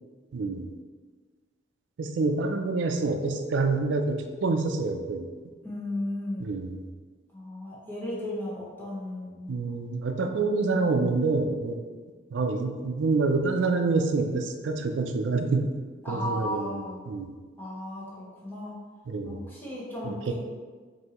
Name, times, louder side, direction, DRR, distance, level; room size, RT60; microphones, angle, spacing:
voice 1, 0.3-0.7 2.0-5.3 6.4-6.8 9.5-11.8 12.3-15.7 16.1-17.3 19.1-19.4 20.0-20.3, right 3 dB, 85° right, 6 dB, 0.4 m, -27 dB
voice 2, 5.6-6.5 7.3-9.5 16.0-17.0 17.6-18.8 19.2-20.3, left 1 dB, 10° left, -7 dB, 0.9 m, -35 dB
5.4 x 2.7 x 2.9 m, 1.5 s
head